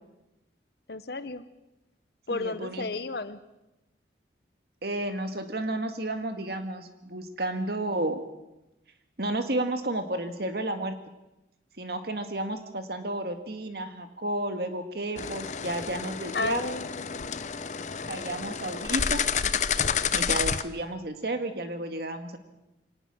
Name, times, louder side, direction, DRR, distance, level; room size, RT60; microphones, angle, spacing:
voice 1, 0.9-1.4 2.3-3.4 16.3-17.5, left 3 dB, 60° left, 13 dB, 1.0 m, -33 dB
voice 2, 2.3-2.8 4.8-8.2 9.2-11.0 11.8-16.7 18.1-19.2 20.1-22.4, right 1 dB, 55° right, 7 dB, 2.0 m, -32 dB
sound 1, 15.2-20.6, left 7 dB, 40° left, 0.7 m, -29 dB
23.5 x 18.5 x 6.4 m, 0.94 s
head